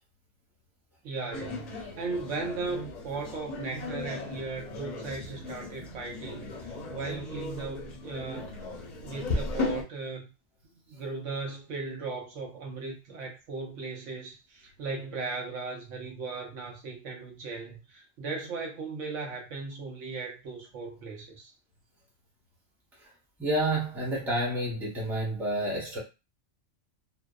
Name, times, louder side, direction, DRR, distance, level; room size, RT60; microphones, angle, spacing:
voice 1, 1.0-8.6 9.0-10.3 10.9-21.5, right 3 dB, 80° right, 1.1 m, -37 dB
sound 1, 1.3-9.8, left 2 dB, 50° left, 0.5 m, -36 dB
voice 2, 23.4-26.0, right 1 dB, ahead, 0.6 m, -29 dB
2.7 x 2.1 x 2.3 m
omnidirectional pair, 1.3 m